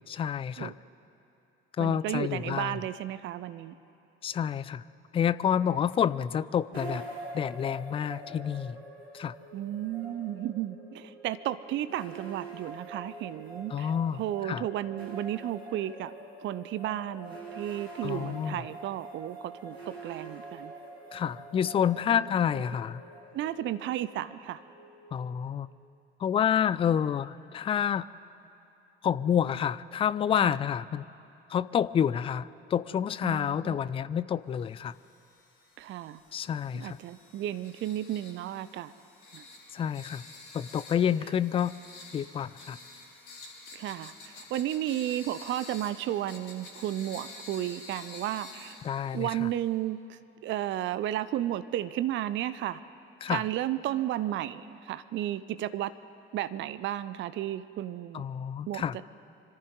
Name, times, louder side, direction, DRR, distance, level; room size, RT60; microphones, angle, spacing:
voice 1, 0.1-0.7 1.8-2.8 4.2-4.8 5.1-7.0 7.3-8.8 9.1-9.3 13.7-14.6 18.0-18.6 21.1-23.0 25.1-25.7 26.2-28.1 29.0-31.1 31.5-34.9 36.3-37.0 39.7-40.2 40.5-41.7 42.1-42.8 48.8-49.5 53.2-53.4 58.1-59.0, left 8 dB, 20° left, 17 dB, 0.4 m, -28 dB
voice 2, 1.8-3.7 9.5-16.1 16.4-20.7 22.1-22.2 22.5-22.6 23.3-24.6 30.4-30.6 33.2-33.8 35.8-36.2 36.7-38.9 39.3-39.5 43.7-48.8 49.1-52.8 53.3-55.9 56.3-58.2 58.7-59.0, right 12 dB, 40° right, 15 dB, 0.6 m, -33 dB
sound 1, 6.7-25.8, right 2 dB, 85° right, 1.6 m, -45 dB
sound 2, 34.8-49.7, left 3 dB, 60° left, 3.3 m, -49 dB
25.5 x 14.5 x 3.8 m, 2.7 s
figure-of-eight pair, 55°, 31 cm